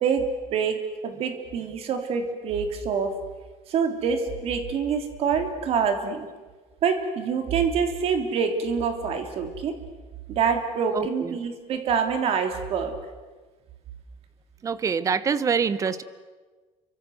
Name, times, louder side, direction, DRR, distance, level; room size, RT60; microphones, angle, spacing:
voice 1, 0.0-3.2 3.7-6.3 6.8-9.7 10.3-13.0, right 6 dB, 45° right, 6 dB, 3.3 m, -26 dB
voice 2, 10.9-11.4 14.6-16.0, right 6 dB, 25° right, 15 dB, 1.0 m, -25 dB
29.5 x 24.5 x 8.0 m, 1.3 s
cardioid pair, 170°, 14 cm